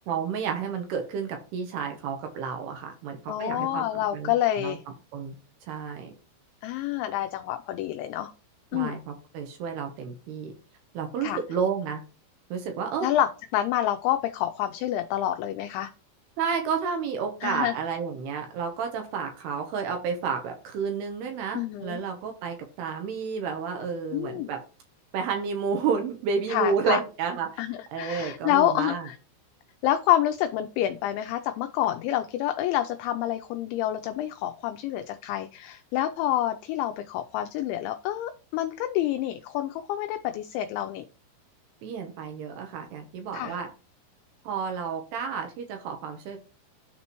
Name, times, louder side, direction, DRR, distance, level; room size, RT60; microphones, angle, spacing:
voice 1, 0.1-4.3 4.6-4.8 5.1-5.4 5.7-6.1 8.7-10.5 10.9-12.0 12.5-13.1 16.4-24.6 25.1-27.5 27.9-29.0 41.8-43.7 44.4-46.4, right 6 dB, 80° right, 4 dB, 2.4 m, -31 dB
voice 2, 3.3-4.8 6.6-8.3 8.7-9.0 11.2-11.4 13.0-15.9 17.4-17.8 21.5-22.0 24.1-24.5 26.5-27.0 27.6-29.2 29.8-41.1 43.3-43.6, left 12 dB, 85° left, 8 dB, 2.6 m, -28 dB
12.5 x 4.2 x 3.0 m, 0.35 s
omnidirectional pair, 5.8 m